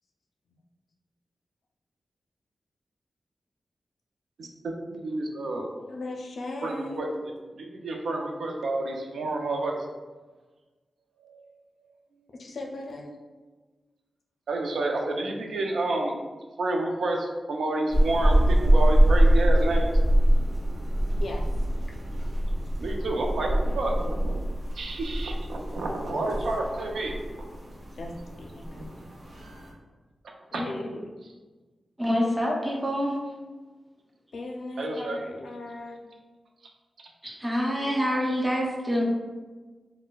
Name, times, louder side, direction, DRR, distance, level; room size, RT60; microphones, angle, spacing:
voice 1, 4.9-5.7 6.6-7.1 7.6-9.9 11.2-11.4 14.5-16.2 16.6-19.9 22.8-24.5 24.7-27.5 28.7-28.8 30.5-30.6 34.8-35.2 37.8-37.9, right 2 dB, 90° right, 1 dB, 0.4 m, -30 dB
voice 2, 5.9-7.1 12.3-13.1 21.2-21.5 26.1-26.3 28.0-28.9 30.5-31.1 34.3-36.0, left 2 dB, 60° left, 0 dB, 0.4 m, -37 dB
sound 1, 17.9-29.7, right 1 dB, 60° right, 0.8 m, -24 dB
voice 3, 32.0-33.2 37.2-39.0, equal, 10° right, -2 dB, 0.4 m, -26 dB
4.0 x 2.1 x 2.3 m, 1.3 s
wide cardioid pair, 175°, 0 cm